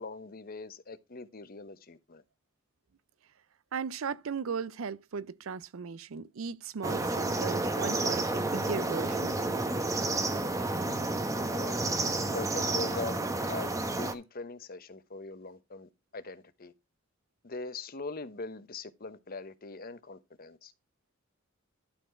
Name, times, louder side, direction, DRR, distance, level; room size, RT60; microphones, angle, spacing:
voice 1, 0.0-2.2 11.5-11.8 12.3-16.7 17.4-20.7, left 3 dB, 45° left, 1.0 m, -41 dB
voice 2, 3.7-9.7, right 6 dB, 75° right, 0.5 m, -37 dB
sound 1, 6.8-14.1, right 2 dB, 15° right, 1.0 m, -30 dB
12.0 x 4.3 x 4.4 m
head